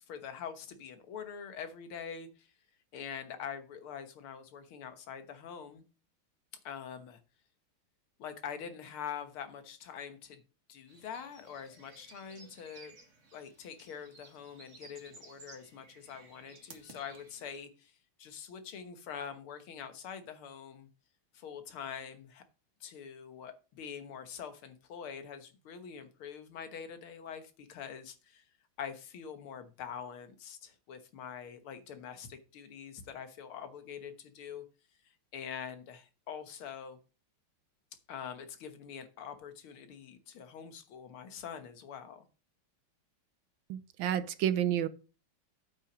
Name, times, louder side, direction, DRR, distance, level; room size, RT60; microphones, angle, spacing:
voice 1, 0.1-2.5 2.9-5.8 6.6-7.2 8.2-10.4 10.7-12.9 13.3-17.9 18.2-20.9 21.3-22.4 22.8-28.4 28.8-34.6 35.3-37.0 38.1-42.3, left 7 dB, 80° left, 2.1 m, -44 dB
sound 1, 10.9-17.6, right 3 dB, 35° right, 2.0 m, -56 dB
voice 2, 43.7-44.9, right 10 dB, 75° right, 1.3 m, -30 dB
8.4 x 5.7 x 6.0 m
omnidirectional pair, 2.3 m